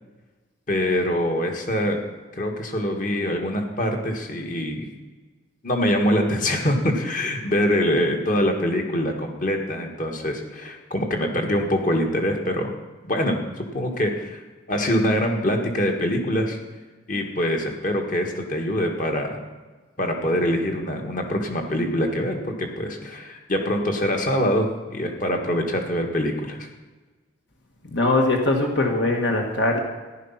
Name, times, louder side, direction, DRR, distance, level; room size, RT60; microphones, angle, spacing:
voice 1, 0.7-2.0 2.3-4.9 5.6-12.7 13.0-13.4 13.7-14.4 14.7-16.6 17.1-19.4 20.0-22.4 22.8-26.7, equal, 40° left, 3 dB, 1.8 m, -24 dB
voice 2, 27.9-29.8, left 2 dB, 60° left, 1 dB, 1.7 m, -21 dB
14.5 x 11.0 x 5.8 m, 1.3 s
head